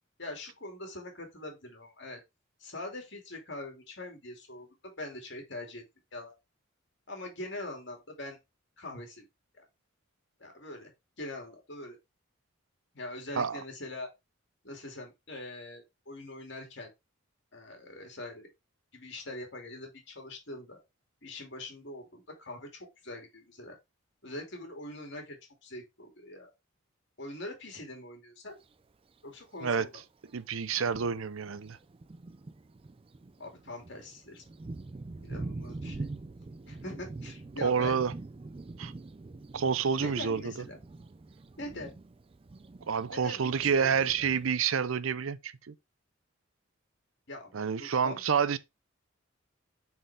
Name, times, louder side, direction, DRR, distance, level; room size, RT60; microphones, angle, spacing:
voice 1, 0.2-2.2 2.6-5.8 6.1-6.3 7.1-8.4 8.8-9.2 9.6-9.7 10.4-10.9 11.2-12.0 12.9-14.1 14.6-16.9 17.5-18.5 18.9-20.8 21.2-23.8 24.2-26.5 27.2-28.5 29.2-30.0 33.4-34.4 35.2-36.1 36.7-38.0 39.9-40.8 41.6-41.9 43.1-44.3 47.3-47.5 47.8-48.2, left 2 dB, 55° left, 2.6 m, -43 dB
Thunder, 28.5-28.6 29.6-29.7 30.3-30.4 30.7-44.5, right 2 dB, 25° right, 0.4 m, -44 dB
voice 2, 30.3-31.8 37.6-38.1 38.8-38.9 39.5-40.5 42.9-45.7 47.5-48.6, right 6 dB, 75° right, 0.6 m, -28 dB
7.5 x 4.4 x 3.4 m
head